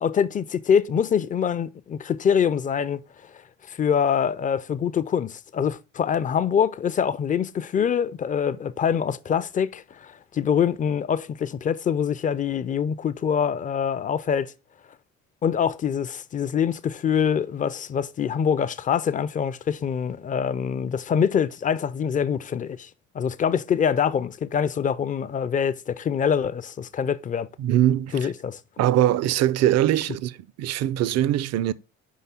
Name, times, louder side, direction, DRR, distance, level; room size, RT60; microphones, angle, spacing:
voice 1, 0.0-3.0 3.7-14.5 15.4-22.9 23.1-27.5 28.1-28.6, left 7 dB, 20° left, 0.4 m, -24 dB
voice 2, 27.6-28.3 28.8-31.7, right 12 dB, 45° right, 0.5 m, -22 dB
5.3 x 3.8 x 5.5 m
figure-of-eight pair, 50°, 39 cm